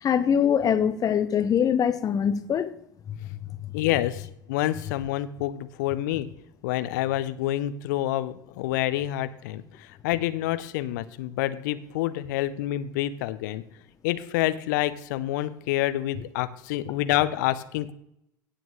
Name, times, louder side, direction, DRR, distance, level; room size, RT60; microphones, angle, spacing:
voice 1, 0.0-2.7 3.1-3.2 3.6-3.7, left 8 dB, 35° left, 0.9 m, -23 dB
voice 2, 3.7-6.3 6.6-13.6 14.0-17.9, left 14 dB, 60° left, 0.7 m, -28 dB
16.5 x 7.7 x 3.2 m
figure-of-eight pair, 75°, 11 cm